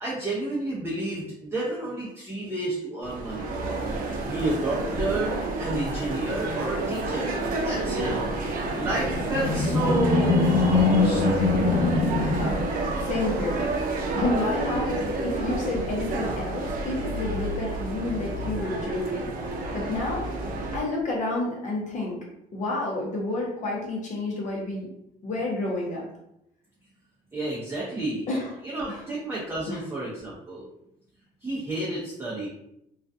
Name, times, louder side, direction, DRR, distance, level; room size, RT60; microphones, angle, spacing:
voice 1, 0.0-3.5 4.2-8.2 8.8-11.4 27.3-28.3 28.6-30.7 31.4-32.5, right 2 dB, 15° right, -7 dB, 0.7 m, -31 dB
sound 1, 3.0-20.8, right 2 dB, 60° right, 0.5 m, -29 dB
Animal, 8.7-13.2, left 3 dB, 90° left, 0.7 m, -23 dB
voice 2, 12.2-19.3 19.7-20.3 20.7-22.2 22.5-24.9 25.2-26.1 28.3-28.5 28.9-29.0 29.7-29.8, left 2 dB, 50° left, -3 dB, 0.7 m, -30 dB
2.4 x 2.2 x 2.5 m, 0.79 s
cardioid pair, 110°, 16 cm